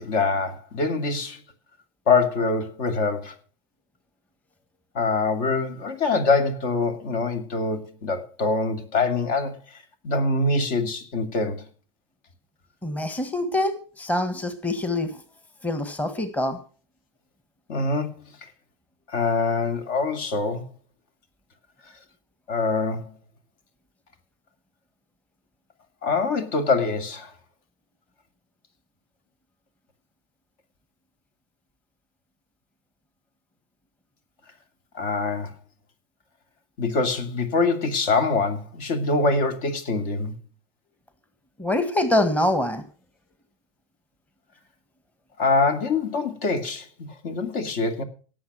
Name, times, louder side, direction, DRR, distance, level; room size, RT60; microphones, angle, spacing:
voice 1, 0.0-1.4 2.1-3.3 4.9-9.8 10.0-11.7 17.7-18.2 19.1-20.6 22.5-23.1 26.0-27.3 34.9-35.5 36.8-40.3 45.4-48.0, left 3 dB, 50° left, 8 dB, 2.4 m, -24 dB
voice 2, 12.8-15.2 15.6-16.6 41.6-42.8, left 1 dB, 10° left, 9 dB, 1.7 m, -25 dB
17.5 x 7.4 x 6.1 m, 0.39 s
figure-of-eight pair, 95°, 15 cm